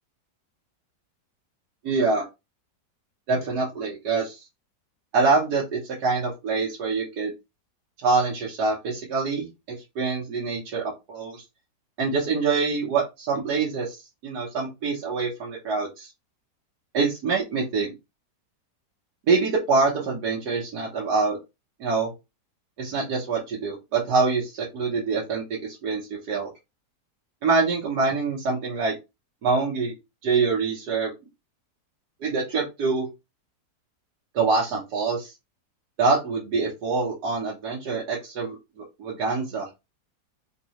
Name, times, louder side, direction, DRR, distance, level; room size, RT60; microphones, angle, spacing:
voice 1, 1.8-2.2 3.3-4.4 5.1-7.3 8.0-11.4 12.0-16.1 16.9-17.9 19.3-21.4 21.8-22.1 22.8-26.5 27.4-28.9 29.4-29.9 30.2-31.1 32.2-33.1 34.3-35.3 36.0-39.9, right 4 dB, 70° right, -3 dB, 1.5 m, -25 dB
3.9 x 2.7 x 2.9 m, 0.23 s
omnidirectional pair, 1.8 m